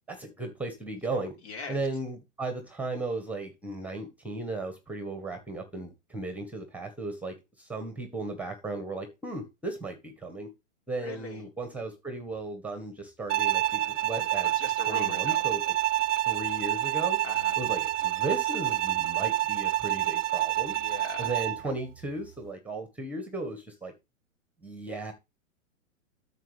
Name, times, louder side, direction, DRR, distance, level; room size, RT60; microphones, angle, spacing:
voice 1, 0.1-1.3 1.7-10.5 10.9-14.5 14.9-15.7 16.2-17.2 17.5-20.7 21.2-23.9 24.6-25.1, right 2 dB, 5° right, 1.6 m, -36 dB
voice 2, 1.4-1.8 11.0-11.4 14.4-15.4 17.2-17.6 20.7-21.3, left 3 dB, 50° left, 4.8 m, -40 dB
Bowed string instrument, 13.3-21.7, right 14 dB, 65° right, 0.5 m, -28 dB
9.1 x 7.3 x 3.4 m
hypercardioid pair, 140°, 41 cm